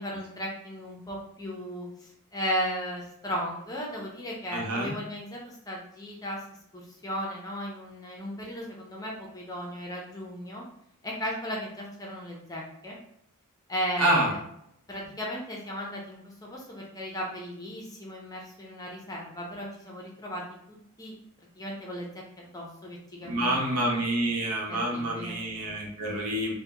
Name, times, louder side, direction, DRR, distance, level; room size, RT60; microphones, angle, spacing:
voice 1, 0.0-6.4 6.7-10.6 11.0-13.0 13.7-14.4 14.9-20.4 20.7-21.1 21.6-22.1 22.4-23.7 24.7-25.4, equal, 15° left, -2 dB, 0.7 m, -36 dB
voice 2, 4.5-4.9 14.0-14.3 23.2-26.5, right 1 dB, 90° right, -1 dB, 0.9 m, -27 dB
3.7 x 2.2 x 2.8 m, 0.73 s
head